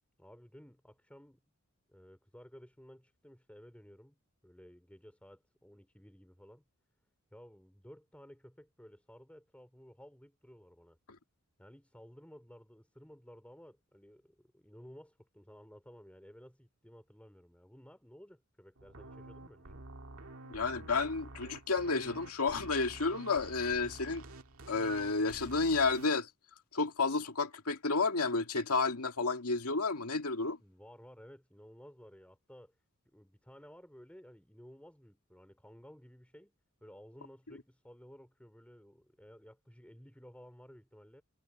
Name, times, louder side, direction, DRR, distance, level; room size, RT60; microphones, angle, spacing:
voice 1, 0.2-1.4 1.9-6.6 7.3-11.0 11.6-19.7 30.6-32.8 33.1-36.5 36.8-41.2, equal, 5° left, 4.1 m, -55 dB
sound 1, 18.8-26.1, right 2 dB, 70° right, 1.9 m, -50 dB
voice 2, 20.5-24.2 24.7-26.3 26.7-30.6, left 4 dB, 85° left, 2.1 m, -31 dB
head